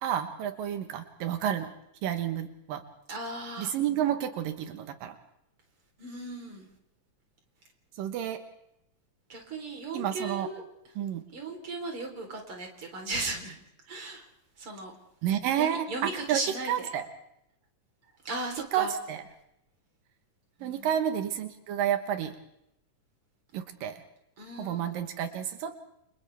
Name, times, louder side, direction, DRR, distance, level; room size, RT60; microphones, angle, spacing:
voice 1, 0.0-1.7 2.0-2.8 3.6-5.2 8.0-8.4 9.9-10.5 11.0-11.2 15.2-17.1 18.7-19.2 20.6-22.3 23.5-24.0 24.6-25.8, right 10 dB, 85° right, 7 dB, 2.9 m, -30 dB
voice 2, 3.1-3.8 6.0-6.7 9.3-10.6 11.3-13.5 13.9-14.2 14.6-14.9 15.6-16.7 18.2-18.9 20.6-20.9 24.4-24.9, right 2 dB, 40° right, 2 dB, 4.5 m, -36 dB
29.5 x 27.0 x 3.4 m, 0.79 s
omnidirectional pair, 3.9 m